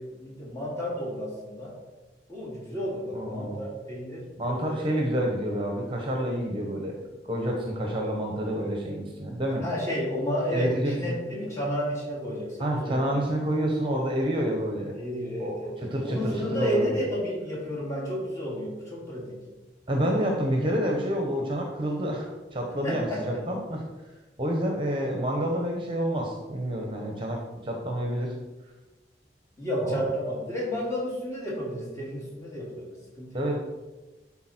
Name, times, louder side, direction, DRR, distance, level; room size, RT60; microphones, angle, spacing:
voice 1, 0.0-1.7 2.3-4.8 9.6-13.2 14.9-15.8 16.0-19.4 22.8-23.4 29.6-33.5, equal, 15° left, -5 dB, 2.8 m, -31 dB
voice 2, 3.1-3.6 4.4-6.9 7.2-9.6 10.5-11.1 12.6-15.0 15.4-17.0 19.9-23.8 24.4-28.3 29.8-30.0 33.3-33.6, equal, 30° right, 1 dB, 1.1 m, -28 dB
12.0 x 4.2 x 4.5 m, 1.1 s
head